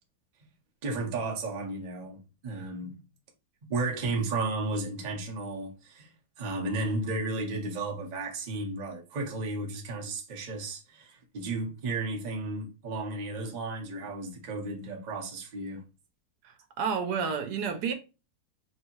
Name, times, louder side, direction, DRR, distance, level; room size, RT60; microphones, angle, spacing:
voice 1, 0.8-3.1 3.7-6.1 6.4-15.8, right 3 dB, 45° right, 0.6 m, -33 dB
voice 2, 16.4-17.9, right 6 dB, 75° right, 1.2 m, -30 dB
3.0 x 2.7 x 2.8 m
omnidirectional pair, 1.8 m